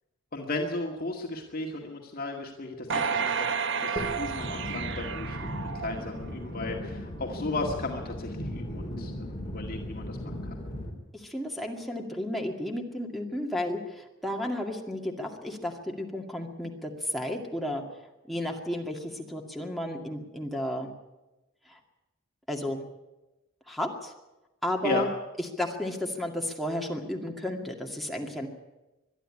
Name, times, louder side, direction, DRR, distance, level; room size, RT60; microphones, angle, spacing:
voice 1, 0.3-10.6 24.8-25.1, left 2 dB, 45° left, 0 dB, 2.1 m, -35 dB
sound 1, 2.9-6.3 6.8-6.9, right 6 dB, 65° right, 0.9 m, -31 dB
sound 2, 4.0-10.9, equal, 25° left, 3.7 m, -37 dB
voice 2, 11.1-17.8 18.3-20.9 21.7-21.8 22.5-22.8 23.7-24.1 24.6-25.1 25.4-28.5, left 1 dB, ahead, 0 dB, 2.2 m, -33 dB
22.0 x 12.5 x 9.8 m, 1.0 s
head